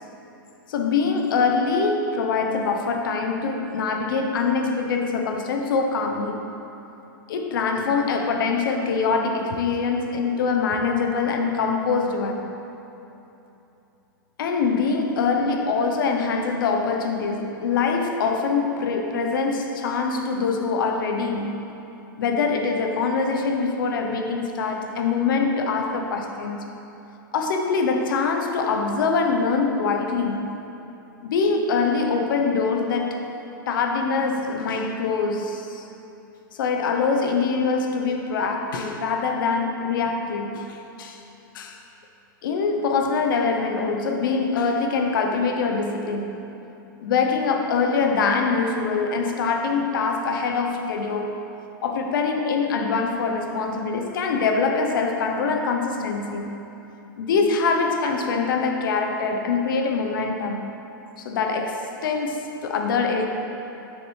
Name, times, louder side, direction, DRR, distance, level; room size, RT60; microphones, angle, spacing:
voice 1, 0.7-6.6 7.3-12.5 14.4-21.7 22.2-26.8 27.3-30.6 31.2-33.3 33.7-35.8 36.5-41.2 41.5-41.8 42.4-46.5 47.0-51.5 51.8-56.7 57.2-60.7 61.2-63.3, left 4 dB, 70° left, 0.8 m, -24 dB
7.1 x 6.6 x 3.2 m
hypercardioid pair, 150°, 12 cm